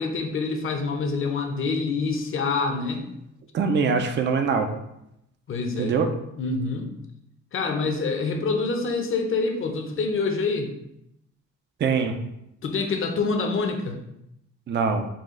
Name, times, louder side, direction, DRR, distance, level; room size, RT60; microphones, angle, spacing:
voice 1, 0.0-3.0 5.5-6.0 6.4-6.9 7.5-10.7 12.6-14.0, left 4 dB, 45° left, 4 dB, 0.7 m, -26 dB
voice 2, 3.5-4.7 5.8-6.1 11.8-12.1 14.7-15.1, right 5 dB, 35° right, 5 dB, 0.5 m, -23 dB
4.1 x 2.4 x 3.6 m, 0.81 s
cardioid pair, 90°, 30 cm